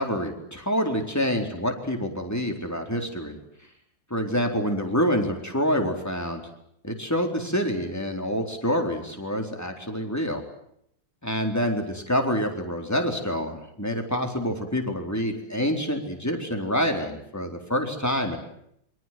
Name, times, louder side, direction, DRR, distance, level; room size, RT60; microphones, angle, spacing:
voice 1, 0.0-3.4 4.1-6.4 6.8-10.4 11.2-18.4, equal, 10° left, 4 dB, 4.2 m, -27 dB
27.0 x 24.5 x 7.7 m, 0.73 s
omnidirectional pair, 2.0 m